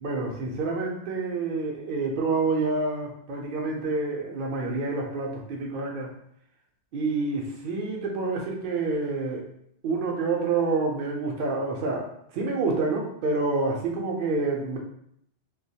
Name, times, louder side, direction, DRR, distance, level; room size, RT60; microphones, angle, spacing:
voice 1, 0.0-6.1 6.9-9.4 9.8-12.1 12.3-14.8, right 3 dB, 60° right, 0 dB, 0.6 m, -28 dB
2.2 x 2.1 x 2.7 m, 0.71 s
omnidirectional pair, 1.2 m